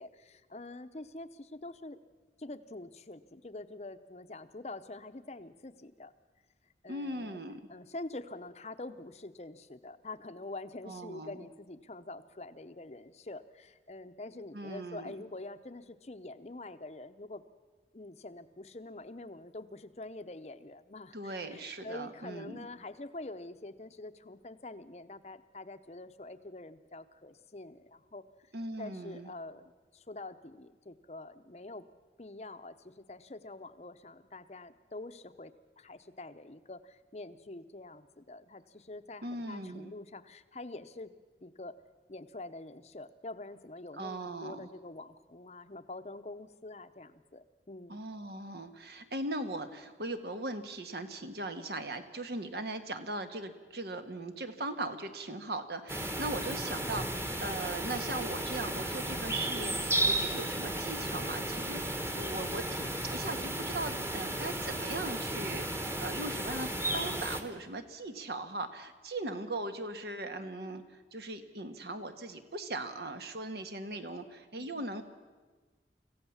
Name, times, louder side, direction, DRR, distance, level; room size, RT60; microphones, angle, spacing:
voice 1, 0.0-2.0 2.4-6.1 6.8-7.4 7.7-17.4 17.9-28.2 28.8-29.6 29.9-31.8 32.2-41.1 41.4-41.7 42.1-48.0 74.6-74.9, left 2 dB, 40° left, 11 dB, 0.8 m, -46 dB
voice 2, 6.9-7.6 10.9-11.4 14.5-15.1 21.1-22.7 28.5-29.3 39.2-39.9 43.9-44.7 47.9-75.0, right 2 dB, 65° right, 8 dB, 1.5 m, -39 dB
sound 1, 55.9-67.4, right 1 dB, 15° right, 1.3 m, -34 dB
25.5 x 15.5 x 7.2 m, 1.3 s
head